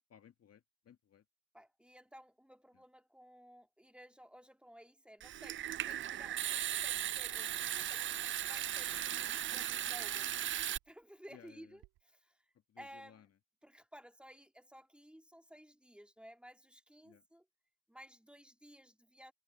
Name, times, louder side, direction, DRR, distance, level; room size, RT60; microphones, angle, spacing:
voice 1, 0.1-1.2 2.7-2.8 11.3-11.8 12.7-13.3 17.0-17.2, left 9 dB, 45° left, 1.7 m, -61 dB
voice 2, 1.5-12.4 12.8-13.3 13.6-17.4 17.9-19.3, equal, 5° right, 2.5 m, -56 dB
Water tap faucet / Sink (filling or washing) / Trickle dribble, 5.2-10.8, right 11 dB, 35° right, 0.4 m, -37 dB
sound 1, 10.7-11.0 11.4-12.0, right 18 dB, 75° right, 1.8 m, -66 dB
supercardioid pair, 80°, 36 cm